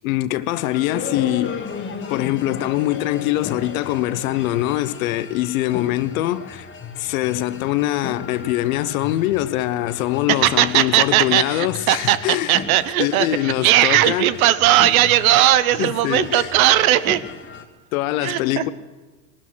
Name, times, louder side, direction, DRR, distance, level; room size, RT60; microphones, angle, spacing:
voice 1, 0.0-1.6 2.1-6.7 7.0-12.6 13.0-14.3 15.8-16.5 17.9-18.7, left 15 dB, 80° left, 0.9 m, -23 dB
sound 1, 0.6-17.6, left 6 dB, 30° left, 1.7 m, -35 dB
voice 2, 10.3-17.2 18.2-18.7, right 13 dB, 85° right, 1.0 m, -18 dB
19.5 x 12.0 x 6.3 m
supercardioid pair, 120°, 41 cm